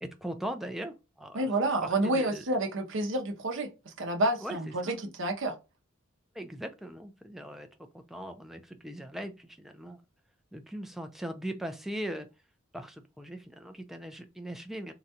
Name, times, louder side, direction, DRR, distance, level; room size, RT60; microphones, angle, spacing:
voice 1, 0.0-1.5 1.8-2.4 4.4-4.6 4.8-5.0 6.3-7.7 7.9-10.0 10.5-12.3 12.7-14.9, right 1 dB, ahead, 0.4 m, -39 dB
voice 2, 1.3-5.6, right 1 dB, 60° right, 0.7 m, -29 dB
3.8 x 2.2 x 2.7 m
head